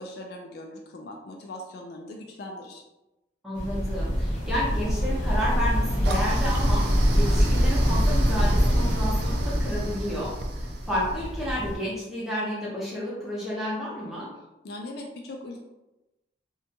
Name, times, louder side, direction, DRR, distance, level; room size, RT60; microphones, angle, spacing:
voice 1, 0.0-2.8 14.6-15.6, left 1 dB, 55° left, 2 dB, 0.3 m, -40 dB
voice 2, 3.4-6.9 7.1-14.3, left 1 dB, ahead, -8 dB, 0.7 m, -31 dB
sound 1, 3.5-11.7, equal, 40° left, 0.9 m, -24 dB
Toilet flush, 6.0-11.2, right 3 dB, 60° right, 0.3 m, -37 dB
2.7 x 2.2 x 2.7 m, 0.99 s
head